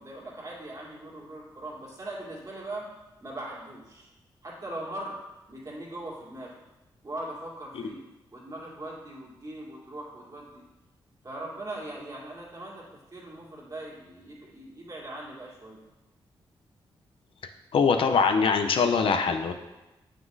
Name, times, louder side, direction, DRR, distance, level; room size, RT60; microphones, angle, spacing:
voice 1, 0.0-2.9 3.2-4.1 4.4-5.2 5.5-6.5 7.0-8.0 8.3-10.6 11.2-12.8 13.1-15.8, right 1 dB, 40° right, -4 dB, 2.3 m, -40 dB
voice 2, 17.7-19.5, left 5 dB, 75° left, 6 dB, 0.5 m, -23 dB
7.1 x 6.4 x 2.6 m, 1.0 s
cardioid pair, 60°, 9 cm